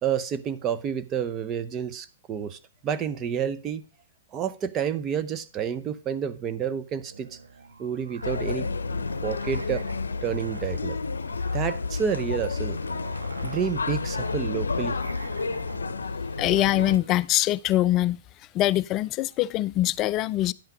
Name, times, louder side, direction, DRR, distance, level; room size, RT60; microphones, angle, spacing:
voice 1, 0.0-3.8 4.3-7.4 7.8-8.7 9.2-9.8 10.2-11.0 11.5-12.8 13.4-15.0, right 8 dB, 25° right, 0.6 m, -29 dB
Musical instrument, 7.0-17.2, right 3 dB, 85° right, 1.5 m, -45 dB
sound 1, 8.2-17.0, left 4 dB, 85° left, 0.6 m, -30 dB
voice 2, 16.4-18.2 18.5-20.5, left 14 dB, 30° left, 0.4 m, -23 dB
10.5 x 5.6 x 4.8 m
hypercardioid pair, 120°, 0 cm